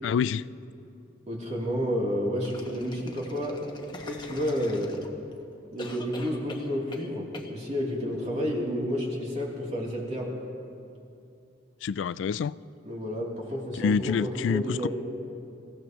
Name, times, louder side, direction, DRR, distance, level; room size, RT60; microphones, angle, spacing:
voice 1, 0.0-0.5 11.8-12.5 13.7-14.9, left 6 dB, 85° left, 18 dB, 0.3 m, -27 dB
voice 2, 1.3-3.6 4.0-5.0 5.7-10.3 12.8-14.9, equal, 40° right, -4 dB, 3.2 m, -30 dB
sound 1, 2.4-5.3 5.8-7.1 7.3-7.5, left 2 dB, 25° left, 1.2 m, -43 dB
27.5 x 16.5 x 3.1 m, 2.6 s
head